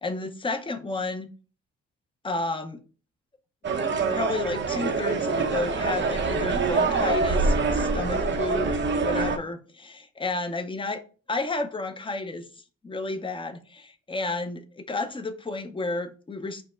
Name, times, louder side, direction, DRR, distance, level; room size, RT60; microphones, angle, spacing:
voice 1, 0.0-1.3 2.2-2.8 4.1-11.0 11.3-12.5 12.8-16.6, left 3 dB, 15° left, 0.7 m, -31 dB
sound 1, 3.6-9.4, right 4 dB, 40° right, 0.7 m, -25 dB
5.2 x 2.1 x 4.3 m
cardioid pair, 90°, 30 cm